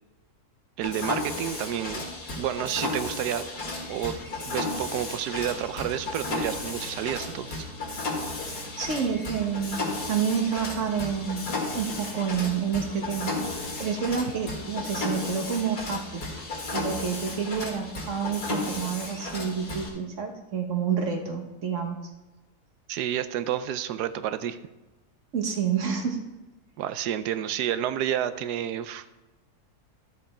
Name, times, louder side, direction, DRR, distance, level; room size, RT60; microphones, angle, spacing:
Mechanisms, 0.8-19.9, left 2 dB, 75° left, 2.6 m, -34 dB
voice 1, 0.8-2.1 2.4-3.5 3.9-4.2 4.4-7.5 22.9-24.6 26.8-29.0, right 10 dB, 90° right, 12 dB, 1.2 m, -30 dB
voice 2, 8.5-9.8 10.1-13.4 13.8-16.3 16.7-22.0 25.3-26.2, right 6 dB, 55° right, 4 dB, 1.4 m, -29 dB
12.5 x 6.8 x 4.2 m, 1.1 s
omnidirectional pair, 1.7 m